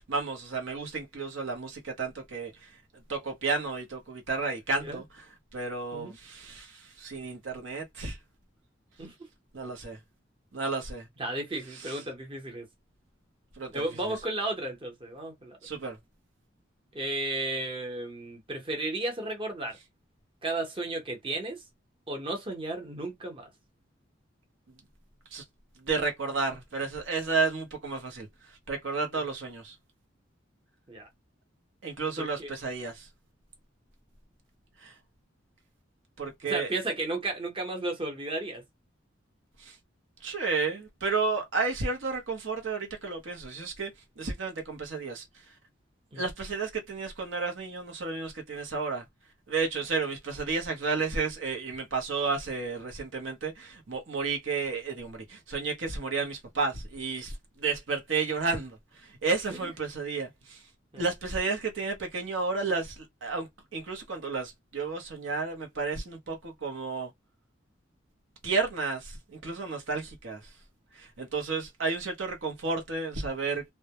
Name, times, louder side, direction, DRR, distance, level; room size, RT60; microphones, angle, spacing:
voice 1, 0.0-2.7 3.1-5.0 5.5-8.2 9.5-10.0 10.5-11.1 11.7-12.0 13.6-14.1 15.6-16.0 25.3-25.4 25.8-28.3 28.7-29.7 31.8-33.1 34.8-34.9 36.2-36.7 39.6-39.7 40.2-43.9 44.2-45.2 46.2-49.0 49.5-60.6 61.0-67.1 68.4-70.4 70.9-73.6, right 4 dB, 75° right, 0.7 m, -32 dB
voice 2, 11.2-12.7 13.7-15.6 16.9-19.8 20.4-21.6 22.1-23.5 29.2-29.3 30.9-31.1 32.2-32.5 36.4-38.6 46.1-46.3 59.5-59.7 60.9-61.0, right 2 dB, 30° right, 0.8 m, -34 dB
2.1 x 2.1 x 2.8 m
head